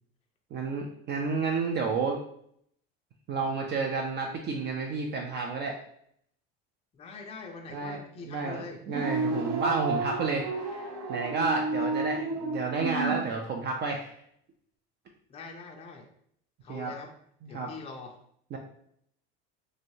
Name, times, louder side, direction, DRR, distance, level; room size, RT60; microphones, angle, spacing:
voice 1, 0.5-2.2 3.3-5.8 7.7-14.1 16.7-16.9 17.4-17.7 18.5-18.6, right 4 dB, 35° right, 1 dB, 0.4 m, -31 dB
voice 2, 6.9-8.8 11.8-12.0 15.3-16.1 16.6-17.1 17.5-18.2, left 4 dB, 20° left, 2 dB, 0.4 m, -43 dB
sound 1, 8.8-13.2, right 3 dB, 65° right, 1.0 m, -31 dB
3.1 x 2.6 x 2.7 m, 0.67 s
supercardioid pair, 115°, 30 cm